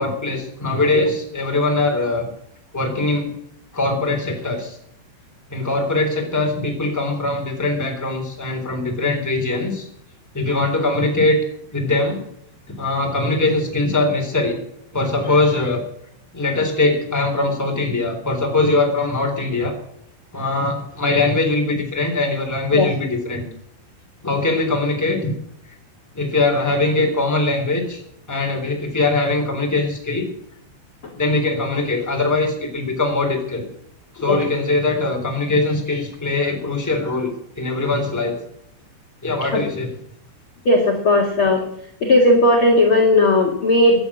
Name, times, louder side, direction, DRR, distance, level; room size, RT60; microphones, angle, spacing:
voice 1, 0.0-2.3 2.7-3.3 3.7-4.8 5.5-9.9 10.3-11.4 11.7-12.2 12.8-14.6 14.9-15.8 16.3-19.7 20.3-23.5 24.2-25.3 26.1-28.0 28.3-30.3 31.1-33.7 34.1-37.3 37.6-38.4 39.2-39.9, left 2 dB, 5° left, 2 dB, 2.5 m, -21 dB
voice 2, 40.6-41.6 42.0-44.0, left 1 dB, 50° left, 0 dB, 1.6 m, -16 dB
15.5 x 10.5 x 7.2 m, 0.72 s
omnidirectional pair, 5.6 m